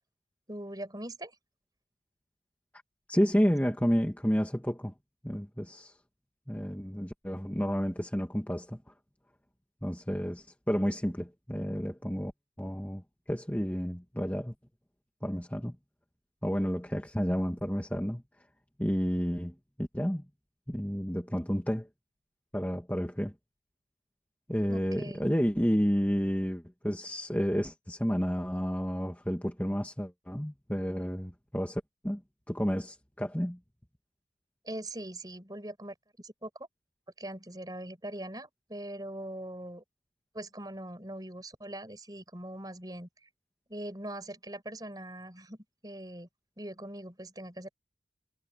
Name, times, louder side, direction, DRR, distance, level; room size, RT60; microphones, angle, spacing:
voice 1, 0.5-1.3 24.7-25.3 34.6-36.7 37.2-39.8 40.3-43.1 43.7-45.6 45.8-46.3 46.6-47.7, right 1 dB, 20° right, 5.8 m, -41 dB
voice 2, 3.1-4.9 5.2-5.9 6.5-8.8 9.8-12.3 12.6-13.0 13.3-14.5 15.2-15.7 16.4-18.2 18.8-20.2 20.7-21.9 22.5-23.3 24.5-32.2 32.5-33.6, equal, 10° left, 2.0 m, -30 dB
head